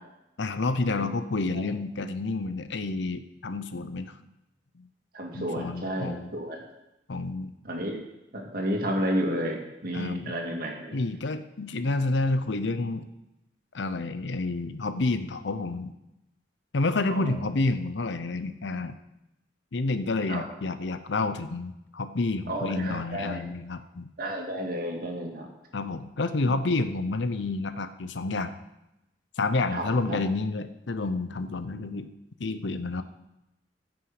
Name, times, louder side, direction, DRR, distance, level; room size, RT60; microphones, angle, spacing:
voice 1, 0.4-4.2 4.8-4.9 5.3-6.3 7.1-7.5 9.9-10.4 10.9-13.1 13.7-15.9 16.7-18.9 19.7-24.1 25.7-28.6 29.4-32.1 32.4-33.0, left 3 dB, 70° left, 10 dB, 0.7 m, -29 dB
voice 2, 5.1-6.6 7.6-8.0 8.3-11.0 17.1-17.4 20.3-20.4 22.5-23.4 24.2-25.5 26.4-26.5 29.7-30.2, equal, 55° right, 1 dB, 2.1 m, -31 dB
14.5 x 6.2 x 4.9 m, 0.91 s
head